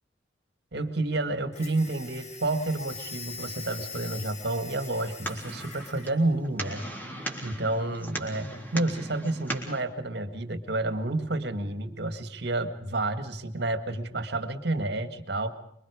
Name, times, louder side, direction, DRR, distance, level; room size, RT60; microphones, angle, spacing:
voice 1, 0.7-6.8 7.4-15.5, right 2 dB, 60° right, 9 dB, 1.9 m, -30 dB
sound 1, 1.5-6.1, left 5 dB, 35° left, 2.6 m, -42 dB
sound 2, 4.8-9.8, right 1 dB, 10° left, 3.5 m, -38 dB
26.0 x 23.5 x 4.9 m, 0.75 s
head